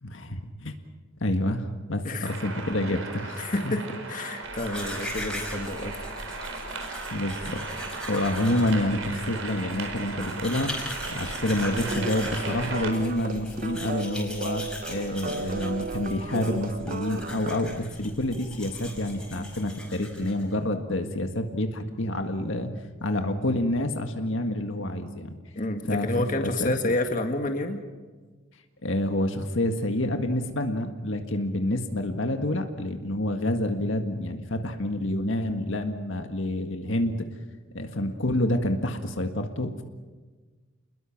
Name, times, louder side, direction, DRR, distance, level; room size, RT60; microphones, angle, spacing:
voice 1, 0.0-0.7 1.2-3.7 7.1-7.6 8.0-10.7 11.1-22.7 23.0-25.3 25.9-26.8 28.8-37.2 37.7-39.8, left 1 dB, 65° left, 5 dB, 1.8 m, -28 dB
sound 1, 2.2-12.9, right 3 dB, 75° right, 4.5 m, -37 dB
voice 2, 3.4-3.8 4.1-5.9 25.5-27.8, left 2 dB, 40° left, 5 dB, 1.9 m, -29 dB
Domestic sounds home sounds, 4.4-20.5, left 1 dB, 5° left, 5.4 m, -40 dB
sound 2, 11.7-17.7, right 4 dB, 40° right, 0.7 m, -35 dB
29.5 x 21.0 x 6.0 m, 1.4 s
head